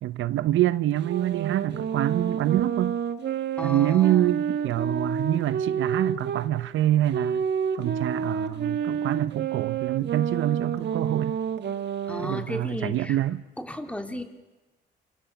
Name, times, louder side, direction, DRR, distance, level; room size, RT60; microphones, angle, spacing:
voice 1, 0.0-3.0 3.6-7.5 7.8-11.4 12.2-13.4, right 13 dB, 80° right, 0.8 m, -26 dB
sound 1, 1.0-6.5 7.1-12.5, right 7 dB, 60° right, 1.9 m, -29 dB
voice 2, 3.6-4.3 12.1-13.2 13.6-14.2, left 1 dB, 5° left, 3.5 m, -34 dB
29.5 x 27.5 x 7.1 m
cardioid pair, 90°, 20 cm